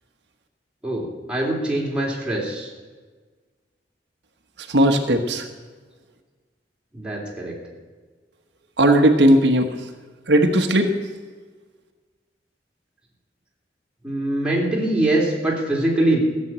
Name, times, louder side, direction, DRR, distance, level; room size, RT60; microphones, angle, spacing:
voice 1, 0.8-2.7 6.9-7.5 14.0-16.2, right 1 dB, 5° right, -4 dB, 3.2 m, -23 dB
voice 2, 4.7-5.5 8.8-9.7 10.3-10.9, right 1 dB, 80° right, 4 dB, 1.3 m, -16 dB
15.5 x 7.6 x 8.8 m, 1.4 s
head